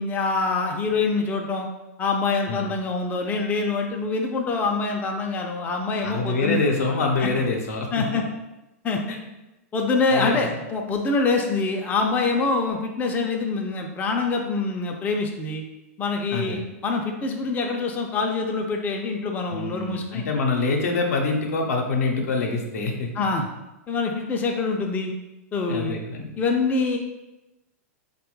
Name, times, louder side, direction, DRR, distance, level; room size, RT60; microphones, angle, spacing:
voice 1, 0.0-1.7 2.0-6.6 7.2-7.3 7.9-8.2 8.8-9.0 9.7-15.6 16.0-20.2 23.1-23.5 23.9-25.1 25.5-26.0 26.4-27.0, left 4 dB, 20° left, 1 dB, 0.3 m, -25 dB
voice 2, 6.0-8.0 9.1-9.2 10.1-10.5 16.3-16.6 19.5-23.1 25.7-26.3, left 3 dB, 75° left, 2 dB, 0.6 m, -25 dB
3.1 x 2.2 x 3.0 m, 0.99 s
hypercardioid pair, 110°, 8 cm